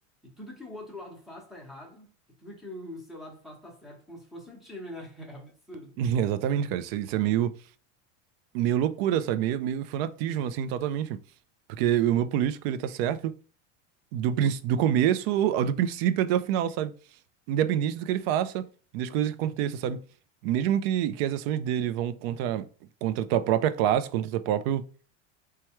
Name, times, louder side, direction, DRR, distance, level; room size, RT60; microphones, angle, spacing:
voice 1, 0.2-2.1 2.4-6.0, left 1 dB, ahead, 0.9 m, -43 dB
voice 2, 6.0-7.5 8.5-11.2 11.8-13.3 14.1-16.9 17.5-18.7 18.9-20.0 20.4-22.7 23.0-24.8, right 10 dB, 55° right, 0.4 m, -26 dB
4.4 x 2.3 x 3.0 m
supercardioid pair, 150°, 36 cm